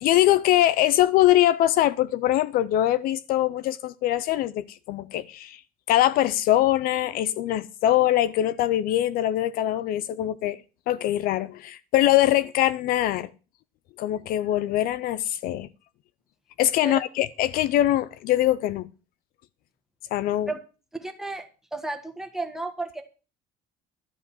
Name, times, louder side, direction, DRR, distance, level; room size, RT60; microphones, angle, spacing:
voice 1, 0.0-5.6 5.9-10.6 10.9-13.3 14.0-15.7 16.6-18.9 20.1-20.5, left 13 dB, 55° left, 0.5 m, -22 dB
voice 2, 20.9-21.4 21.7-23.0, right 2 dB, ahead, 1.5 m, -32 dB
12.5 x 5.3 x 9.0 m
cardioid pair, 160°, 18 cm